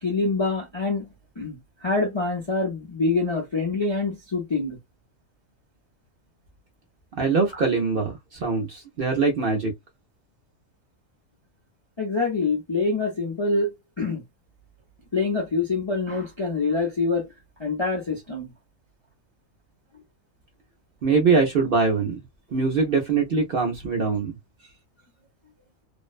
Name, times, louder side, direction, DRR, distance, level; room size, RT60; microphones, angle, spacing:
voice 1, 0.0-1.0 1.4-4.8 12.0-14.2 15.1-17.2 17.6-18.5, left 3 dB, 40° left, 0.4 m, -25 dB
voice 2, 7.1-9.7 21.0-22.2 22.5-24.4, right 4 dB, 55° right, 0.6 m, -23 dB
2.5 x 2.0 x 2.3 m
omnidirectional pair, 1.4 m